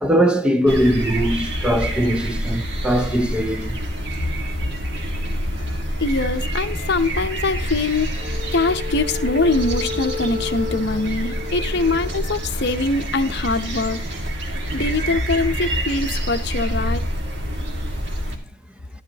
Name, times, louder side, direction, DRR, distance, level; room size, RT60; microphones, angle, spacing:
voice 1, 0.0-3.8, equal, 5° right, 0.5 m, -20 dB
sound 1, 0.7-18.4, equal, 60° right, 1.8 m, -27 dB
voice 2, 6.0-14.0 14.7-17.0, left 3 dB, 60° left, 0.8 m, -23 dB
Wind instrument woodwind instrument, 8.2-12.6, left 6 dB, 30° right, 6.4 m, -33 dB
12.5 x 11.0 x 2.9 m
head